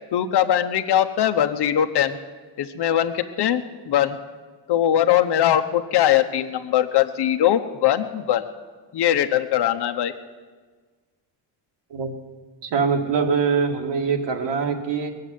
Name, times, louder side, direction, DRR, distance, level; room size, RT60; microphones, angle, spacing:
voice 1, 0.1-2.2 2.6-4.2 4.7-8.5 8.9-10.1, left 11 dB, 65° left, 7 dB, 1.0 m, -21 dB
voice 2, 12.6-15.1, right 5 dB, 75° right, 4 dB, 2.2 m, -23 dB
20.0 x 7.7 x 9.3 m, 1.4 s
cardioid pair, 105°, 42 cm